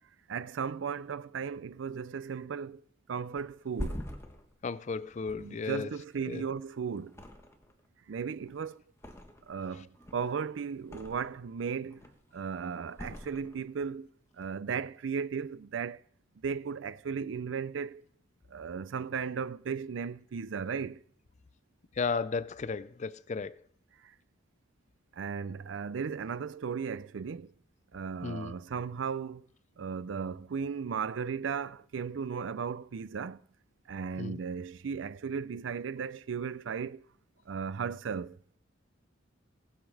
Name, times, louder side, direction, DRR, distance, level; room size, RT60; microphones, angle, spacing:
voice 1, 0.3-2.8 3.1-4.0 5.3-7.2 8.1-8.8 9.5-12.0 12.3-14.1 14.4-16.0 16.4-18.0 18.5-21.0 24.0-24.1 25.1-27.5 27.9-29.4 29.8-33.4 33.9-37.1 37.5-38.4, right 6 dB, 80° right, 0.4 m, -36 dB
Thump thud, 3.4-6.6 7.1-7.9 8.1-9.6 9.9-11.5 11.8-12.4 12.9-13.9 14.3-14.5, equal, 15° left, 1.3 m, -44 dB
voice 2, 4.6-5.9 6.3-6.4 22.0-23.6 28.2-28.5 34.2-34.4, left 4 dB, 40° left, 0.4 m, -34 dB
18.5 x 7.3 x 4.8 m
head